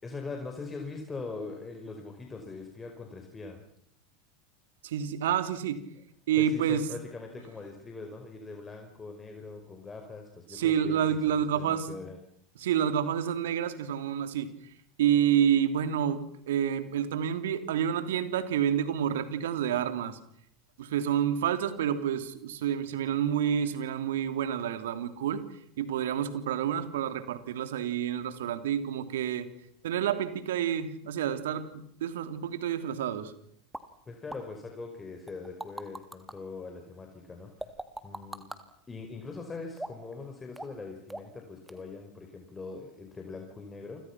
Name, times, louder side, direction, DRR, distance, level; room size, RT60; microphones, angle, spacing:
voice 1, 0.0-3.6 6.4-12.2 34.1-37.7 38.0-38.4 38.9-44.0, left 3 dB, 20° left, 3 dB, 5.1 m, -42 dB
voice 2, 4.8-5.8 6.3-6.8 10.5-11.9 12.6-14.5 15.0-20.2 20.8-25.4 25.8-29.5 29.8-33.3, right 9 dB, 70° right, 10 dB, 3.1 m, -28 dB
sound 1, 33.7-33.8 34.3-34.4 35.3-36.3 37.6-38.6 39.8-40.1 40.6-40.8 41.1-41.4 41.7-41.8, right 1 dB, 5° right, 3.0 m, -39 dB
29.5 x 26.0 x 6.1 m, 0.71 s
hypercardioid pair, 85°, 0 cm